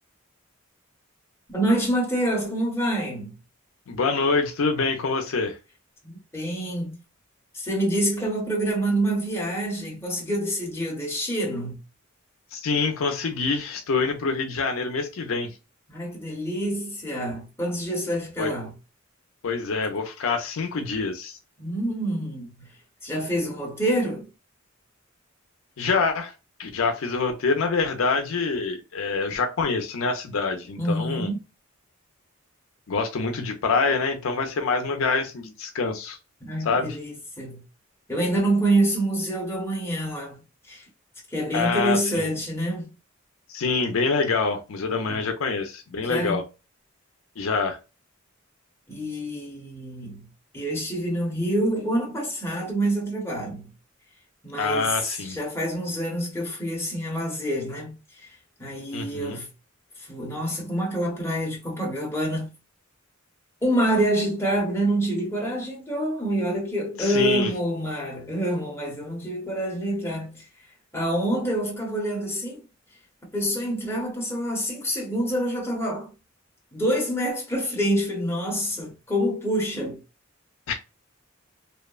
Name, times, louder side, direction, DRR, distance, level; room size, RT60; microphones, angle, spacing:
voice 1, 1.5-3.4 6.0-7.0 7.5-11.8 15.9-18.7 21.6-22.7 23.0-24.2 30.8-31.4 36.4-37.6 38.1-40.4 40.7-40.8 41.3-42.9 45.1-45.2 46.0-46.4 48.9-50.3 50.5-53.7 54.4-58.3 58.6-59.5 60.0-62.5 63.6-70.4 70.9-72.6 73.3-76.1 76.7-80.0, right 1 dB, 10° left, 1.0 m, -27 dB
voice 2, 3.9-5.6 12.5-15.5 18.4-18.5 19.4-21.4 25.8-26.3 26.6-31.3 32.9-36.2 36.7-37.0 41.5-42.3 43.5-46.4 47.4-47.8 54.6-55.4 58.9-59.4 67.0-67.5 80.7-80.8, left 4 dB, 75° left, 0.5 m, -26 dB
2.8 x 2.1 x 2.3 m
head